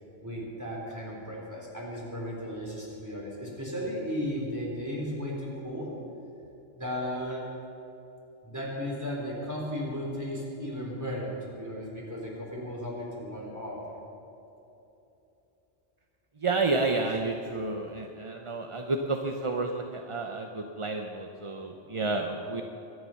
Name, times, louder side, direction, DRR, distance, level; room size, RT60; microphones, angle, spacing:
voice 1, 0.2-5.9 6.7-7.5 8.4-13.8, equal, 15° right, -4 dB, 4.2 m, -35 dB
voice 2, 16.4-22.6, right 3 dB, 30° right, 3 dB, 0.7 m, -30 dB
23.5 x 9.6 x 6.0 m, 2.9 s
omnidirectional pair, 1.3 m